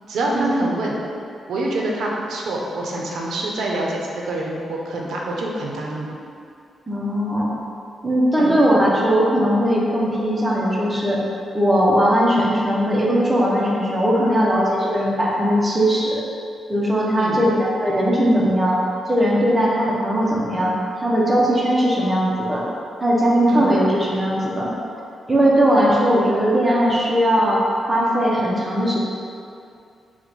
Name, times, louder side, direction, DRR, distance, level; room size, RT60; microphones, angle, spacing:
voice 1, 0.1-1.0 1.5-6.1 8.4-8.5 17.1-17.4 23.5-23.7, right 1 dB, 80° right, -2 dB, 0.5 m, -26 dB
voice 2, 6.9-7.5 8.0-11.2 11.5-16.2 16.7-18.8 19.1-22.6 23.0-24.7 25.3-29.0, equal, 10° right, -4 dB, 0.5 m, -19 dB
4.4 x 2.1 x 4.0 m, 2.5 s
wide cardioid pair, 165°, 0 cm